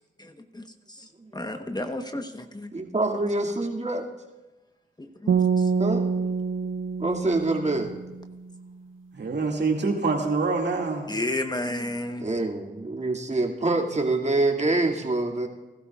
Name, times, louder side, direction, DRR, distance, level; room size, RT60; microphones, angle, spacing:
voice 1, 0.2-1.0 1.3-2.7 5.2-5.7 11.1-12.3, left 1 dB, 20° left, 6 dB, 1.1 m, -32 dB
voice 2, 2.7-4.1 5.8-6.0 7.0-7.9 12.2-15.5, right 2 dB, 35° right, -1 dB, 2.3 m, -25 dB
sound 1, 5.3-8.5, right 5 dB, 80° right, 0.9 m, -26 dB
voice 3, 9.1-11.1, right 4 dB, 60° right, 1 dB, 2.2 m, -25 dB
19.5 x 12.5 x 2.4 m, 1.2 s
cardioid pair, 50°, 20 cm